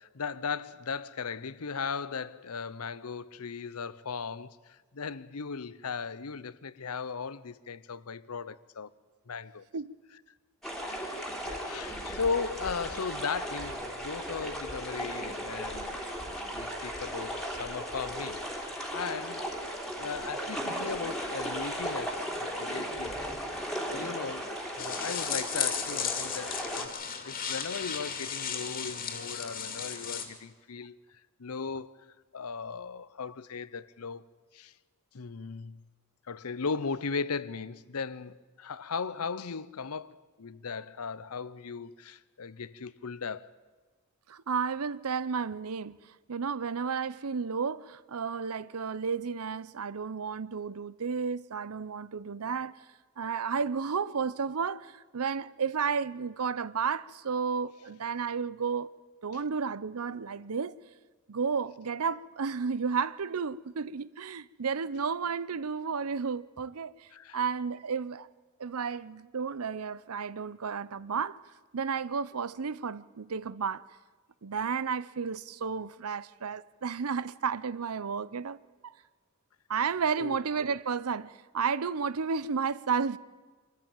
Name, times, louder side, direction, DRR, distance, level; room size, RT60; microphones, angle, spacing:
voice 1, 0.0-8.9 9.3-9.7 10.8-16.0 16.5-19.4 20.0-23.2 23.9-27.0 27.2-31.0 31.4-32.0 32.3-34.2 34.5-34.7 35.1-35.8 36.3-43.5 59.3-59.4 67.1-67.4 80.2-80.4, left 5 dB, 85° left, 0.8 m, -37 dB
sound 1, 10.6-26.9, equal, ahead, 3.2 m, -36 dB
sound 2, 24.8-30.3, left 7 dB, 40° left, 2.6 m, -35 dB
voice 2, 44.3-46.0 46.3-52.8 53.2-58.9 59.2-60.7 61.3-67.1 67.3-68.3 68.6-71.4 71.7-73.8 74.4-78.6 78.8-78.9 79.7-83.2, right 6 dB, 80° right, 0.7 m, -32 dB
25.0 x 14.0 x 8.9 m
head